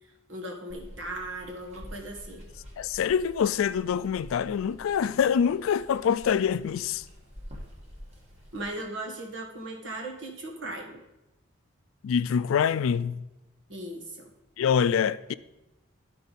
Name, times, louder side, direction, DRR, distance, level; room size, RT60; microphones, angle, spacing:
voice 1, 0.0-2.5 8.5-11.0 13.7-14.3, right 1 dB, 70° right, 1.5 m, -38 dB
Water, 0.7-8.7, equal, 35° right, 1.4 m, -48 dB
voice 2, 2.8-7.0 12.0-13.2 14.6-15.3, left 7 dB, 85° left, 0.3 m, -25 dB
12.0 x 4.5 x 4.0 m
head